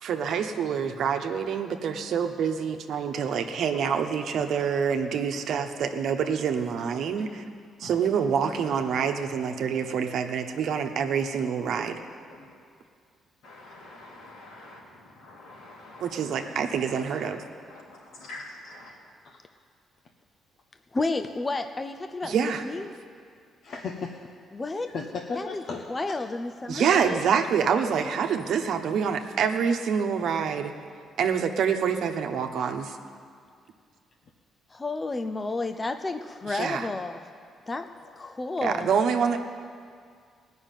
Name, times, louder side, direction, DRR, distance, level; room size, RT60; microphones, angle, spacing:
voice 1, 0.0-7.4 7.8-12.0 16.0-17.4 22.2-22.6 26.7-30.7 31.2-33.0 36.5-36.9 38.6-39.4, right 7 dB, 70° right, 5 dB, 1.1 m, -26 dB
voice 2, 13.4-14.6 15.2-17.3 17.7-18.9, left 2 dB, 80° left, -4 dB, 3.6 m, -46 dB
voice 3, 20.9-22.9 24.5-24.9 25.4-25.6 25.9-27.2 34.7-37.2 37.7-37.9 38.2-38.9, left 3 dB, 25° left, 8 dB, 0.6 m, -31 dB
voice 4, 23.6-24.3 24.9-26.2 38.0-38.2 38.4-38.6, left 4 dB, 60° left, 2 dB, 0.9 m, -36 dB
18.5 x 6.2 x 9.1 m, 2.2 s
cardioid pair, 90°, 0 cm